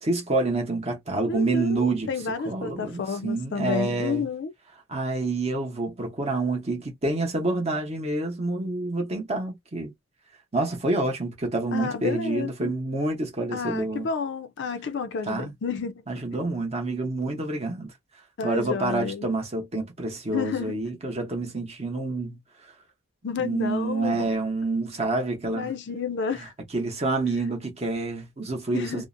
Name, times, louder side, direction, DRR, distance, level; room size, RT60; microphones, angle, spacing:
voice 1, 0.0-2.1 2.4-4.2 4.9-9.9 10.5-14.1 15.3-15.5 16.1-17.9 18.4-22.4 23.4-25.7 26.7-29.1, right 2 dB, 30° right, 0.8 m, -28 dB
voice 2, 1.3-4.5 11.7-12.7 13.5-15.9 18.4-19.3 20.3-20.8 23.2-24.3 25.5-26.5 28.7-29.0, left 5 dB, 55° left, 0.4 m, -30 dB
2.5 x 2.0 x 2.5 m
head